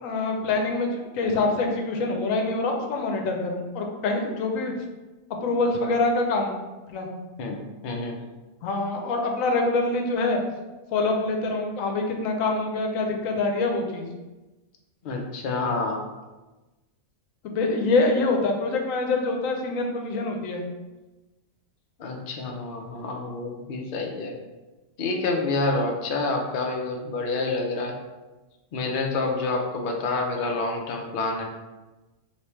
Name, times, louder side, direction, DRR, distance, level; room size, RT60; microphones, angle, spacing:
voice 1, 0.0-4.7 5.3-6.5 6.9-7.1 8.6-10.4 10.9-14.0 17.4-20.6, left 3 dB, 90° left, 2 dB, 1.0 m, -25 dB
voice 2, 7.4-8.2 15.0-16.0 22.0-24.4 25.0-28.0 28.7-31.4, left 3 dB, 55° left, 1 dB, 0.6 m, -28 dB
3.3 x 3.0 x 3.0 m, 1.1 s
omnidirectional pair, 1.4 m